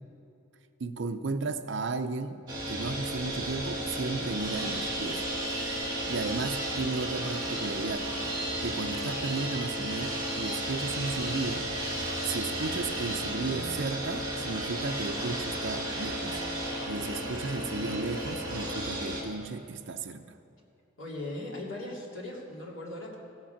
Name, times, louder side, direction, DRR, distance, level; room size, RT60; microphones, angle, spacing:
voice 1, 0.8-5.3 6.1-8.1 8.6-11.7 12.2-16.4 16.9-20.3, right 3 dB, 60° right, 10 dB, 0.5 m, -34 dB
sound 1, 2.5-19.2, right 1 dB, 20° right, 2.0 m, -33 dB
voice 2, 21.0-23.2, left 2 dB, 70° left, -4 dB, 2.8 m, -38 dB
16.5 x 7.4 x 5.8 m, 2.6 s
head